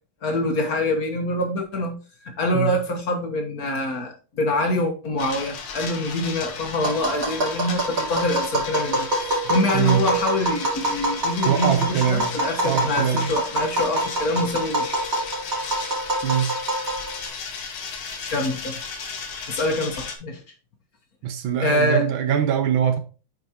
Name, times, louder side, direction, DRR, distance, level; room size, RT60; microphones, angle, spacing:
voice 1, 0.2-2.0 2.2-9.1 9.5-15.0 18.3-18.7 19.5-20.4 21.6-22.1, left 1 dB, 50° left, 1.3 m, -25 dB
sound 1, 5.2-20.2, left 5 dB, 85° left, 2.0 m, -35 dB
Tap, 6.8-17.3, right 2 dB, 40° right, 2.8 m, -25 dB
voice 2, 9.7-10.0 11.5-12.3 12.6-13.3 16.2-16.5 21.2-23.0, right 8 dB, 75° right, 1.6 m, -22 dB
8.0 x 5.2 x 2.9 m
omnidirectional pair, 2.3 m